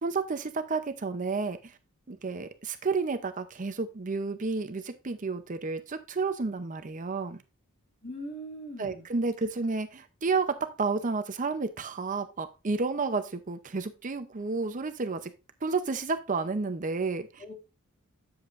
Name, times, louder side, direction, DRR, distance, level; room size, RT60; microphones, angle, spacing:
voice 1, 0.0-1.8 2.1-7.4 8.8-15.3 15.6-17.4, right 4 dB, 40° right, 10 dB, 0.6 m, -31 dB
voice 2, 8.0-9.1 17.4-17.5, equal, 35° left, 0 dB, 2.5 m, -40 dB
8.7 x 7.7 x 2.5 m, 0.29 s
head